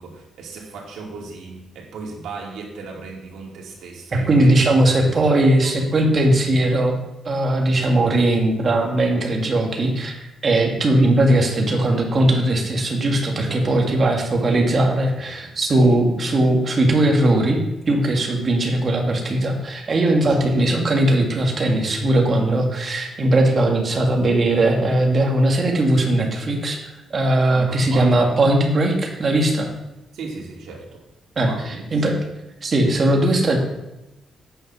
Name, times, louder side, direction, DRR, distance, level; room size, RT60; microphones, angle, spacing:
voice 1, 0.0-4.7 5.0-5.8 13.4-15.6 20.2-20.8 27.5-28.2 30.1-31.0 31.4-31.8 32.1-32.2, right 4 dB, 90° right, -1 dB, 2.6 m, -37 dB
voice 2, 4.1-7.0 7.3-26.8 27.1-29.7 31.4-32.2 32.6-33.6, right 1 dB, 30° right, 1 dB, 1.8 m, -19 dB
8.8 x 6.5 x 6.1 m, 0.98 s
cardioid pair, 160°, 0 cm